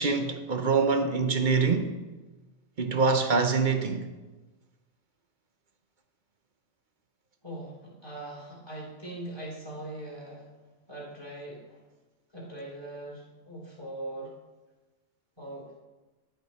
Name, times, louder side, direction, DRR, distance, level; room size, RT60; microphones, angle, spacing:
voice 1, 0.0-1.9 2.8-4.0, right 4 dB, 45° right, 0.8 m, -25 dB
voice 2, 7.4-10.4 10.9-11.8 12.3-14.3 15.4-15.7, right 1 dB, 20° left, 3.3 m, -41 dB
11.5 x 9.0 x 4.2 m
omnidirectional pair, 1.4 m